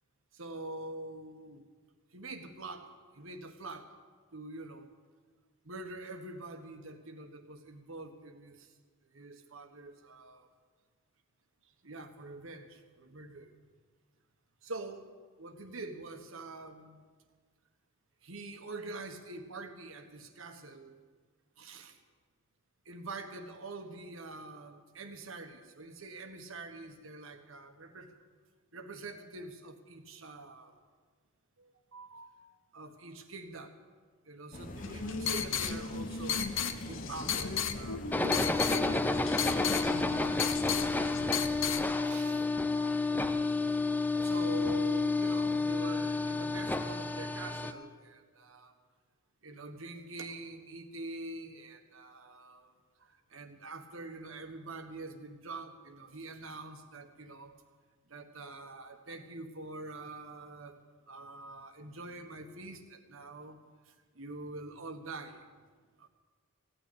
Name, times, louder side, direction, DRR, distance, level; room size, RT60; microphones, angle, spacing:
voice 1, 0.3-1.7 2.1-3.9 4.3-4.9 5.6-8.7 9.0-10.4 11.8-13.5 14.6-15.1 15.4-17.0 18.2-21.0 21.6-22.0 22.8-28.2 28.7-30.8 31.6-32.3 32.7-33.8 34.2-36.6 36.9-39.7 40.5-41.5 42.0-42.5 43.0-43.8 44.2-48.7 49.4-52.7 53.0-57.5 58.1-60.8 61.1-63.6 63.9-65.5 66.0-66.1, right 2 dB, 75° right, 7 dB, 1.4 m, -45 dB
sound 1, 34.5-41.7, left 1 dB, 40° left, 0.8 m, -45 dB
sound 2, 34.8-41.8, left 7 dB, 70° left, 0.8 m, -35 dB
sound 3, 38.1-47.7, left 3 dB, 10° left, 0.5 m, -30 dB
16.0 x 9.0 x 8.6 m, 1.5 s
head